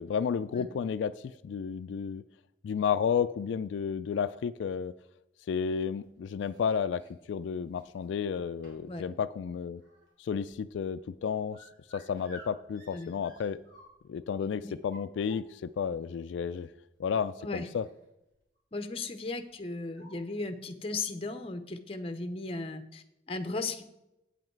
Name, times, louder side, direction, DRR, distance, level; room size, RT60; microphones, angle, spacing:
voice 1, 0.0-2.2 2.6-4.9 5.5-7.0 7.3-9.8 10.2-11.6 11.9-13.6 14.1-16.7 17.0-17.8, left 7 dB, 85° left, 12 dB, 0.3 m, -32 dB
sound 1, 5.7-7.1 7.7-8.2 8.6-9.0 9.3-14.2 14.7-15.8 16.6-16.7 17.1-17.2 17.6-18.1 18.3-18.6 19.5-19.6 19.9-20.2, equal, 90° right, 3.1 m, -55 dB
voice 2, 18.7-23.8, left 3 dB, 30° left, 9 dB, 0.7 m, -36 dB
8.5 x 7.7 x 4.5 m, 0.88 s
head